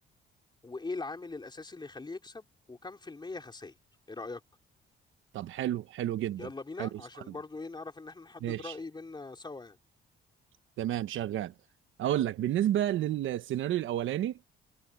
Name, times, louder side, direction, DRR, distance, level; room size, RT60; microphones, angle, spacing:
voice 1, 0.6-3.8 4.1-4.4 6.4-9.8, left 3 dB, 20° left, 3.6 m, -41 dB
voice 2, 5.3-6.5 6.8-6.9 7.3-7.4 8.4-8.7 10.8-11.5 12.0-14.4, right 12 dB, 80° right, 1.1 m, -30 dB
cardioid pair, 90°, 20 cm